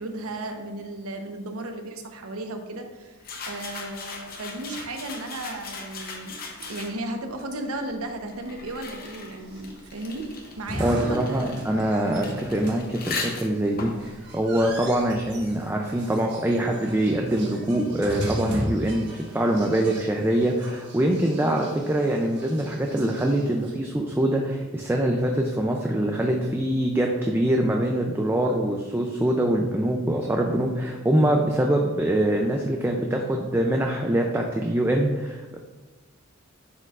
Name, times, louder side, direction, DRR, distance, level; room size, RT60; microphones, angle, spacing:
voice 1, 0.0-6.4 6.7-10.3 10.6-11.8 21.4-21.6, right 2 dB, 90° right, 4 dB, 0.8 m, -35 dB
sound 1, 3.2-7.2 8.0-15.4, left 4 dB, 45° left, 0.7 m, -38 dB
sound 2, 9.4-23.7, equal, 50° right, 1.4 m, -37 dB
voice 2, 10.8-35.6, right 1 dB, 10° right, 1 dB, 0.4 m, -24 dB
10.5 x 4.4 x 2.4 m, 1.2 s
head